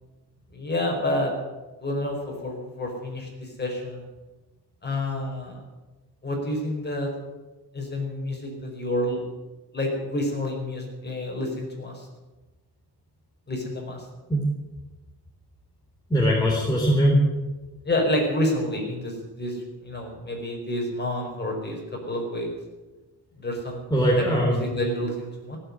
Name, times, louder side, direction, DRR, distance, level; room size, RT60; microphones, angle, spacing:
voice 1, 0.5-1.3 1.8-4.0 4.8-5.6 6.2-7.1 7.7-9.2 9.7-12.1 13.5-14.0 17.8-21.8 22.1-22.5 23.4-23.8 24.2-25.6, left 1 dB, 25° left, 1 dB, 4.9 m, -29 dB
voice 2, 16.1-17.2 23.9-25.1, equal, 10° left, -3 dB, 3.6 m, -21 dB
17.0 x 8.3 x 9.9 m, 1.2 s
cardioid pair, 120°, 39 cm